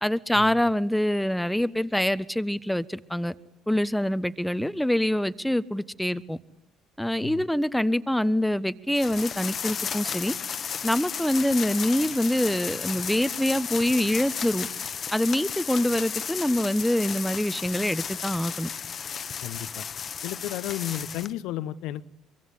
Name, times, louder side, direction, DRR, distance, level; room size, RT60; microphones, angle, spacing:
voice 1, 0.0-3.3 3.7-6.4 7.0-10.3 10.8-14.7 15.1-18.7, left 1 dB, 5° left, 1.2 m, -25 dB
sound 1, 9.0-21.3, left 7 dB, 45° left, 1.4 m, -34 dB
voice 2, 19.4-19.8 20.2-22.0, left 13 dB, 65° left, 1.0 m, -33 dB
24.5 x 24.0 x 9.9 m
hypercardioid pair, 50°, 0 cm